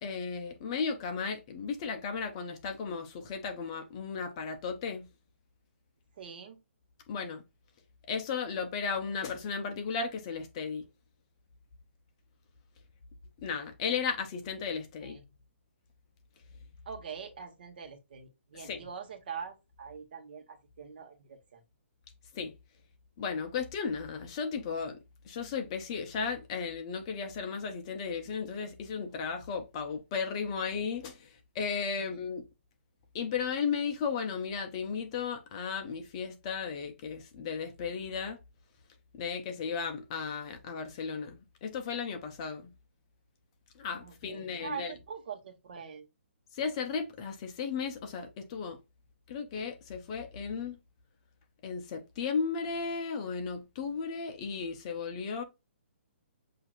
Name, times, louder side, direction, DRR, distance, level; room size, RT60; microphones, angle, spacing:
voice 1, 0.0-5.1 7.1-7.4 8.1-10.8 13.4-15.2 18.6-18.8 22.3-22.5 23.2-25.0 25.3-32.4 33.1-38.4 39.1-42.7 43.8-44.9 46.5-48.8 49.3-50.8 51.6-55.4, left 5 dB, 25° left, 0.7 m, -35 dB
voice 2, 6.2-6.6 15.0-15.2 16.8-21.6 44.0-46.1, right 6 dB, 45° right, 1.2 m, -43 dB
7.4 x 2.7 x 2.5 m
hypercardioid pair, 165°, 7 cm